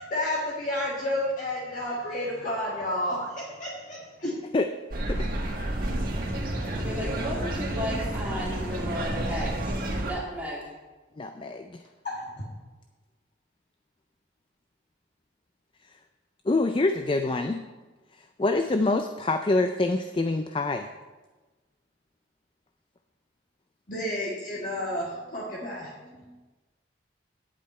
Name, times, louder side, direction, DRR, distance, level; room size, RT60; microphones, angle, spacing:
voice 1, 0.1-4.3 12.0-12.4 23.9-26.2, left 1 dB, 40° left, -6 dB, 1.7 m, -31 dB
sound 1, 4.9-10.1, right 1 dB, 50° right, 1.7 m, -30 dB
voice 2, 6.8-9.8 10.0-10.7, equal, 10° right, -6 dB, 2.5 m, -34 dB
voice 3, 11.2-11.8 16.5-17.6 18.4-20.9, left 2 dB, 25° left, 8 dB, 0.4 m, -25 dB
10.0 x 8.4 x 4.3 m, 1.3 s
head